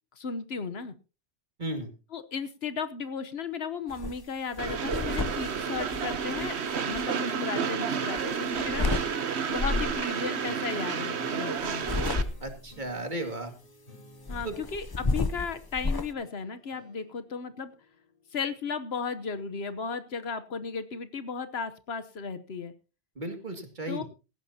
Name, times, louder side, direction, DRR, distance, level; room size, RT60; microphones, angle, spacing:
voice 1, 0.2-0.9 2.1-6.6 6.9-8.9 9.5-11.9 14.3-17.7 18.3-22.7 23.9-24.0, left 5 dB, 70° left, 11 dB, 1.2 m, -35 dB
voice 2, 1.6-1.9 12.4-13.5 14.4-14.5 23.2-24.0, right 1 dB, 45° right, 5 dB, 2.4 m, -35 dB
sound 1, 3.9-4.2 4.5-7.0 8.2-9.1 9.6-10.0 11.6-12.7 14.3-16.1, left 3 dB, 25° left, 0.6 m, -31 dB
Train, 4.6-12.2, right 6 dB, 75° right, 1.3 m, -31 dB
sound 2, 10.2-19.1, left 1 dB, 55° left, 4.2 m, -56 dB
17.0 x 15.0 x 2.8 m, 0.31 s
omnidirectional pair, 1.1 m